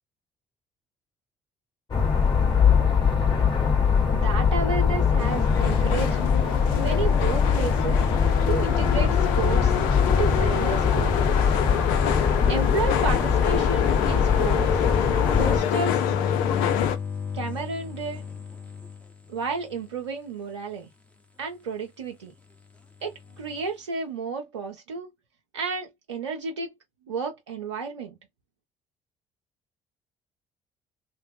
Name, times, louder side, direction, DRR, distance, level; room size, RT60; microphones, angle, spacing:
sound 1, 1.9-15.6, left 6 dB, 30° left, 2.0 m, -22 dB
voice 1, 4.1-6.5 6.8-8.0 8.5-9.8 10.1-11.5 12.5-14.7 15.4-16.1 17.3-18.2 19.3-20.9 21.4-22.3 23.0-25.1 25.5-26.7 27.1-28.1, right 4 dB, 90° right, 0.5 m, -32 dB
sound 2, 5.2-17.0, left 10 dB, 70° left, 0.5 m, -27 dB
sound 3, 15.2-19.8 23.1-23.6, left 6 dB, 10° left, 1.0 m, -32 dB
3.1 x 2.1 x 3.3 m
hypercardioid pair, 55°, 15 cm